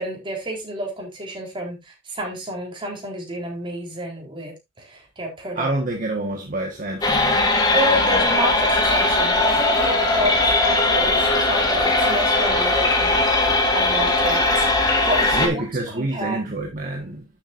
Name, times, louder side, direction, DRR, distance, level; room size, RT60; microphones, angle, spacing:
voice 1, 0.0-5.7 7.7-15.6 15.9-16.4, right 1 dB, 25° right, 4.0 m, -29 dB
voice 2, 5.5-7.4 8.0-8.2 15.3-17.2, right 2 dB, 40° right, 1.6 m, -27 dB
sound 1, 7.0-15.5, left 2 dB, 20° left, 2.3 m, -19 dB
11.5 x 7.5 x 2.6 m
head